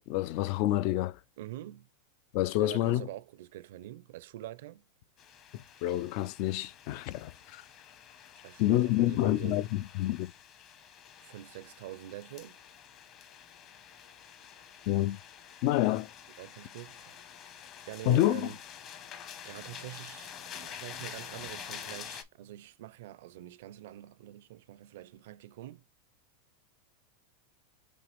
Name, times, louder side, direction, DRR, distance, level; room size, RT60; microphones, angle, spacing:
voice 1, 0.1-1.2 2.3-3.1 5.5-7.6 8.6-10.3 14.9-15.2 15.6-16.1 18.1-18.5, left 14 dB, 55° left, 0.4 m, -28 dB
voice 2, 1.4-1.9 2.6-4.8 8.4-9.7 11.2-12.6 16.4-17.2 17.8-18.6 19.4-25.8, right 15 dB, 70° right, 0.5 m, -45 dB
sound 1, 5.2-22.2, left 8 dB, 40° left, 1.0 m, -48 dB
5.2 x 3.0 x 3.4 m
supercardioid pair, 125°, 0 cm